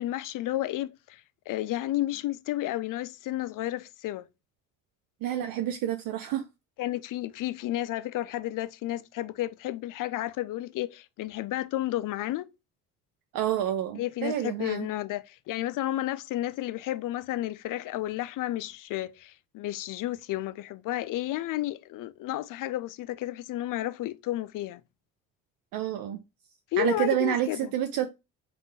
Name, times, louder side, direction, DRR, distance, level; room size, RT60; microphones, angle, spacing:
voice 1, 0.0-4.3 6.8-12.5 14.0-24.8 26.7-27.7, left 14 dB, 55° left, 0.5 m, -32 dB
voice 2, 5.2-6.4 13.3-14.9 25.7-26.2 26.8-28.1, right 11 dB, 65° right, 0.5 m, -28 dB
3.6 x 2.6 x 4.0 m
hypercardioid pair, 60°, 38 cm